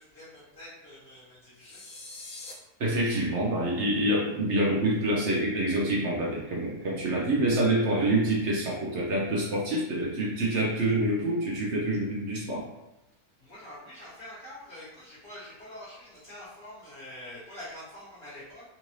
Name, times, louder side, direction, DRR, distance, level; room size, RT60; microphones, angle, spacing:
voice 1, 0.0-1.8 13.4-18.7, left 1 dB, 45° left, -12 dB, 1.5 m, -45 dB
sound 1, 1.6-2.5, left 3 dB, 65° left, 1.0 m, -43 dB
voice 2, 2.8-12.6, right 1 dB, 60° right, -3 dB, 0.8 m, -26 dB
3.8 x 2.5 x 3.1 m, 0.95 s
omnidirectional pair, 1.6 m